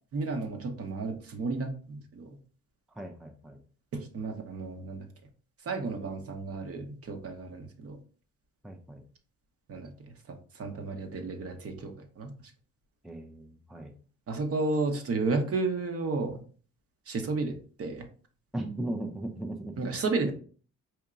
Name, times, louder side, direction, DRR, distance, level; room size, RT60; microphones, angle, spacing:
voice 1, 0.1-2.4 3.9-5.1 5.6-8.0 9.7-12.3 14.3-16.4 17.1-18.1 19.8-20.3, right 3 dB, 50° right, 5 dB, 0.8 m, -32 dB
voice 2, 3.0-3.6 8.6-9.0 13.0-13.9 18.5-19.9 20.2-20.3, right 1 dB, ahead, 5 dB, 0.4 m, -37 dB
4.5 x 2.8 x 2.4 m, 0.42 s
cardioid pair, 90°, 30 cm